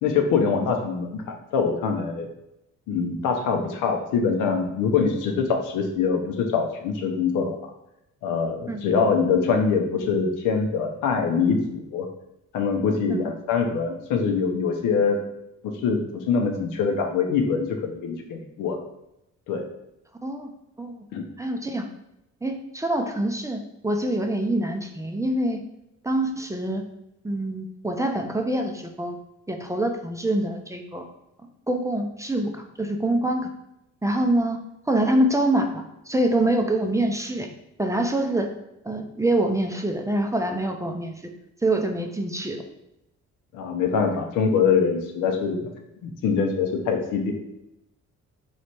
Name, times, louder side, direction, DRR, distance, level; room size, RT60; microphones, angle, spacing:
voice 1, 0.0-2.3 2.9-7.6 8.2-12.1 12.5-15.2 15.8-18.8 19.5-19.6 21.1-21.2 43.5-45.7 46.0-47.3, left 5 dB, 90° left, 3 dB, 0.7 m, -24 dB
voice 2, 21.4-21.9 22.4-25.6 26.0-26.8 27.2-29.2 29.5-31.0 31.7-33.5 34.0-34.6 34.9-37.5 37.8-38.5 38.8-41.2 41.6-42.6, right 1 dB, 10° right, 4 dB, 0.4 m, -25 dB
3.2 x 3.1 x 4.2 m, 0.86 s
cardioid pair, 90°, 30 cm